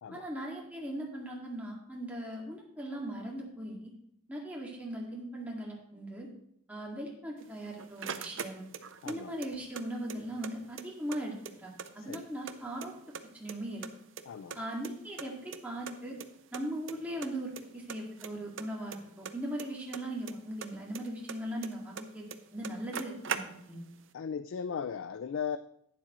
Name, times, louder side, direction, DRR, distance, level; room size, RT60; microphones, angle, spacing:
voice 1, 0.1-3.9 4.3-6.3 6.7-8.7 9.1-12.9 13.3-13.8 14.6-16.2 16.5-22.2 22.5-23.9, right 1 dB, 5° right, -4 dB, 2.0 m, -39 dB
sound 1, 7.4-9.2 9.4-10.5 10.8-10.9 11.1-12.5 12.8-13.6 13.8-15.3 15.5-15.6 15.9-16.0 16.2-16.3 16.5-16.9 17.2-17.6 17.9-20.3 20.6-22.0 22.3-22.4 22.6-23.9, right 6 dB, 65° right, 0.6 m, -40 dB
voice 2, 14.3-14.6 24.1-25.6, left 6 dB, 65° left, 12 dB, 0.3 m, -37 dB
11.5 x 9.5 x 3.1 m, 0.74 s
head